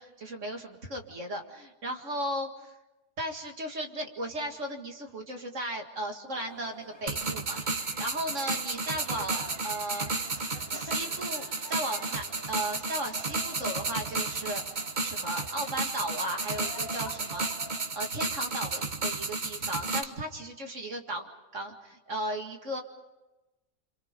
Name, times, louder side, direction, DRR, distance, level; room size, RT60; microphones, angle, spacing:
voice 1, 0.0-2.7 3.2-10.4 10.7-14.6 15.0-17.5 17.9-22.8, right 1 dB, 50° right, 3 dB, 2.4 m, -36 dB
sound 1, 6.4-17.8, left 1 dB, 15° left, 2.5 m, -48 dB
sound 2, 7.1-20.0, right 3 dB, 30° right, 1.1 m, -33 dB
28.0 x 26.0 x 5.3 m, 1.0 s
omnidirectional pair, 1.7 m